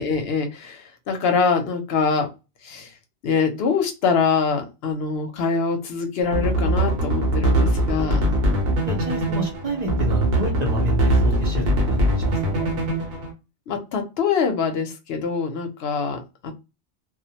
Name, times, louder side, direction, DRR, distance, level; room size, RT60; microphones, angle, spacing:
voice 1, 0.0-2.3 2.6-2.9 3.2-8.2 13.7-16.5, left 5 dB, 70° left, 6 dB, 0.8 m, -24 dB
sound 1, 6.2-13.3, right 1 dB, 65° right, 1.0 m, -22 dB
voice 2, 8.9-12.7, right 1 dB, 45° right, 0 dB, 0.6 m, -28 dB
2.2 x 2.0 x 2.8 m, 0.26 s
omnidirectional pair, 1.1 m